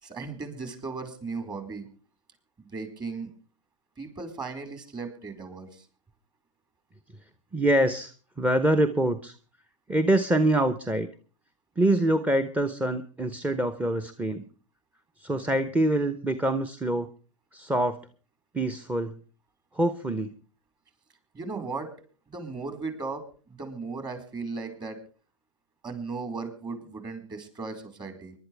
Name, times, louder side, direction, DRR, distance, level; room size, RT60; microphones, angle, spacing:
voice 1, 0.0-1.9 2.6-3.3 4.0-5.9 21.3-21.9 22.3-25.0 25.8-28.3, right 4 dB, 25° right, 7 dB, 4.5 m, -36 dB
voice 2, 7.5-9.3 9.9-11.1 11.8-14.5 15.2-17.1 17.5-18.0 18.5-19.2 19.7-20.3, right 1 dB, 10° right, 11 dB, 1.0 m, -25 dB
24.0 x 11.5 x 3.5 m, 0.38 s
hypercardioid pair, 115°, 17 cm